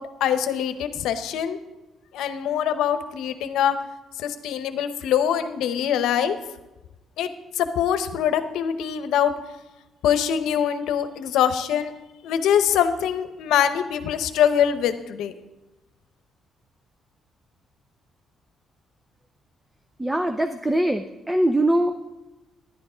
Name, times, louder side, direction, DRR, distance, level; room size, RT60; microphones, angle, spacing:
voice 1, 0.0-1.6 2.1-3.8 4.2-6.4 7.2-7.3 7.6-9.3 10.0-11.9 12.2-15.3, left 9 dB, 85° left, 10 dB, 0.8 m, -23 dB
voice 2, 20.0-22.1, right 1 dB, 10° right, 7 dB, 0.6 m, -22 dB
11.5 x 9.5 x 5.0 m, 1.1 s
cardioid pair, 90°, 0 cm